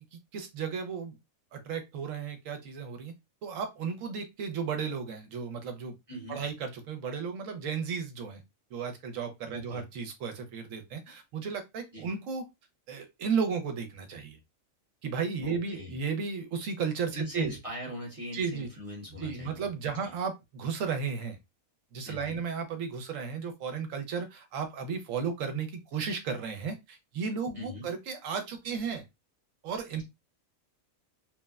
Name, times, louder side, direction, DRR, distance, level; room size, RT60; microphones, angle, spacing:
voice 1, 0.1-1.2 1.5-3.1 3.4-5.9 6.3-8.4 8.7-12.4 12.9-14.4 15.0-17.6 18.3-18.7 19.2-21.4 21.9-29.0 29.6-30.0, right 6 dB, 75° right, 1.0 m, -34 dB
voice 2, 6.1-6.4 9.5-9.8 11.9-12.1 15.4-16.0 17.1-19.7 20.0-20.1 22.0-22.4 27.5-27.9 30.0-30.1, equal, 30° right, 0.9 m, -40 dB
3.1 x 2.1 x 2.3 m
omnidirectional pair, 1.4 m